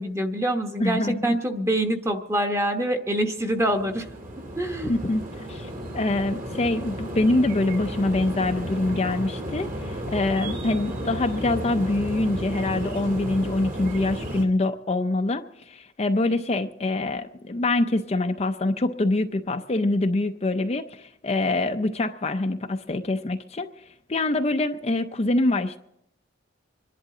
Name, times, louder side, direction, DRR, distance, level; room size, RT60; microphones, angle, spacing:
voice 1, 0.0-4.1 4.6-5.0, right 1 dB, 15° right, 4 dB, 1.1 m, -25 dB
voice 2, 0.8-1.3 4.8-23.7 24.1-25.8, left 2 dB, 30° left, 6 dB, 0.5 m, -25 dB
sound 1, 3.4-14.4, equal, 45° right, 2.3 m, -33 dB
26.0 x 11.0 x 3.8 m, 0.79 s
head